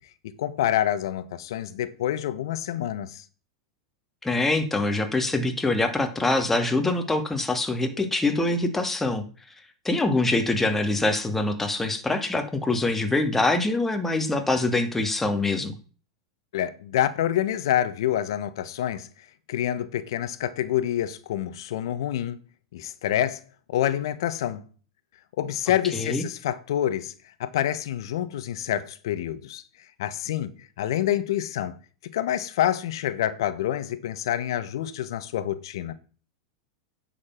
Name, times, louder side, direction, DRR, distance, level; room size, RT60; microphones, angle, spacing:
voice 1, 0.2-3.2 16.5-19.1 19.5-22.4 22.7-23.4 23.7-24.6 25.4-27.1 27.4-29.6 30.0-31.7 32.1-35.9, left 11 dB, 70° left, 1.3 m, -27 dB
voice 2, 4.2-9.2 9.8-15.8 25.9-26.2, left 2 dB, 10° left, 2.2 m, -24 dB
9.8 x 7.2 x 6.0 m
hypercardioid pair, 100°, 3 cm